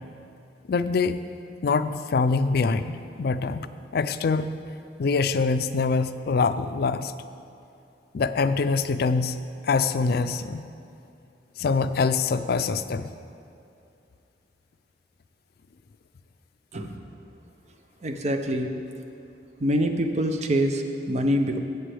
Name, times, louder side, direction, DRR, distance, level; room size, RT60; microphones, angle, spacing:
voice 1, 0.7-1.2 1.6-3.7 3.9-4.5 5.0-7.1 8.1-10.6 11.6-13.1, left 4 dB, 60° left, 11 dB, 0.4 m, -24 dB
voice 2, 16.7-17.1 18.0-18.7 19.6-21.6, equal, 40° right, 5 dB, 0.6 m, -25 dB
15.0 x 8.2 x 3.4 m, 2.6 s
head